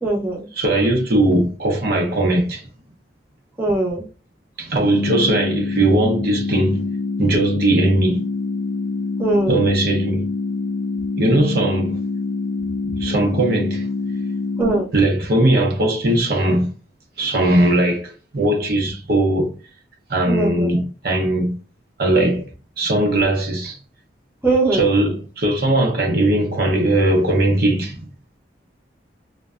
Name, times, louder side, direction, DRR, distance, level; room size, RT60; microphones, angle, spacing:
voice 1, 0.0-0.4 3.6-4.0 9.2-9.6 14.6-14.9 20.3-20.7 24.4-24.9, right 2 dB, 10° right, 0.6 m, -20 dB
voice 2, 0.6-2.7 4.6-6.8 7.2-8.2 9.5-10.3 11.2-12.0 13.0-13.9 14.9-16.7 17.2-19.5 20.1-21.5 22.0-22.5 22.8-23.8 24.7-28.1, right 1 dB, 55° right, 0.6 m, -19 dB
sound 1, 4.8-14.8, left 3 dB, 85° left, 0.3 m, -25 dB
2.6 x 2.1 x 2.3 m
head